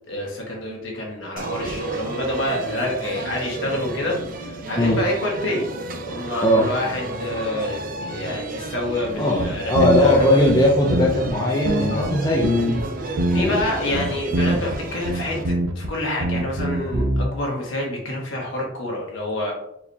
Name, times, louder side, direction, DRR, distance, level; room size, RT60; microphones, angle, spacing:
voice 1, 0.1-5.7 6.0-10.4 11.9-12.1 13.3-19.5, left 1 dB, 55° left, -2 dB, 1.3 m, -27 dB
sound 1, 1.4-15.4, right 3 dB, 40° right, 0.4 m, -33 dB
sound 2, 9.1-9.2 9.4-11.3 11.6-12.8 13.2-13.6 13.9-14.8 15.0-15.9 16.2-17.3, right 1 dB, 85° right, 0.6 m, -23 dB
voice 2, 9.2-12.6 13.4-13.7 13.9-14.0, left 1 dB, 15° left, -3 dB, 0.5 m, -19 dB
4.6 x 3.3 x 2.7 m, 0.76 s
head